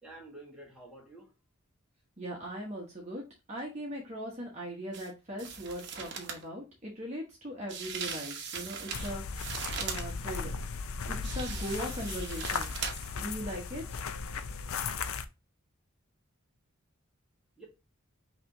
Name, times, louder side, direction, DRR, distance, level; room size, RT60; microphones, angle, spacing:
voice 1, 0.0-1.3 17.6-17.7, right 2 dB, 5° right, -3 dB, 1.6 m, -49 dB
voice 2, 2.2-3.2 3.5-9.2 9.7-10.5 11.1-12.7 13.2-14.0, equal, 30° right, -2 dB, 1.1 m, -39 dB
sound 1, 4.9-5.1 5.4-6.4 7.7-10.1 11.2-13.2 13.5-13.6, right 6 dB, 55° right, 0.9 m, -39 dB
sound 2, 8.9-15.3, left 5 dB, 80° left, 0.5 m, -36 dB
5.8 x 3.0 x 2.6 m, 0.27 s
head